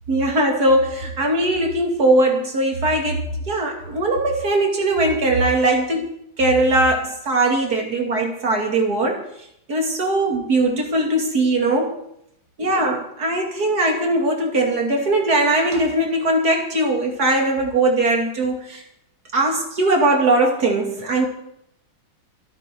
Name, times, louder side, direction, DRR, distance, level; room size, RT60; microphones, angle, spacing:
voice 1, 0.1-6.1 6.4-9.3 9.7-12.0 12.6-18.8 19.3-21.3, right 2 dB, 50° right, 3.2 m, -20 dB
26.5 x 9.0 x 4.7 m
omnidirectional pair, 2.2 m